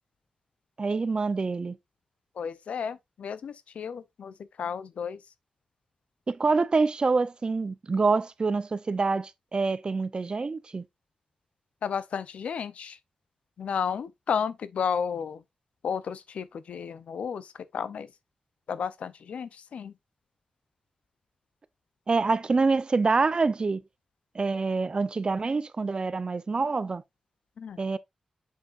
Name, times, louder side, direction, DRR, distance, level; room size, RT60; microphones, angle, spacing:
voice 1, 0.8-1.8 6.3-10.8 22.1-23.8 24.3-27.0 27.8-28.0, right 4 dB, 45° right, 0.6 m, -26 dB
voice 2, 2.4-5.2 11.8-13.0 13.6-15.4 15.8-18.1 18.7-19.9 27.6-27.8, left 7 dB, 90° left, 0.5 m, -33 dB
7.3 x 6.2 x 2.5 m
cardioid pair, 65°, 2 cm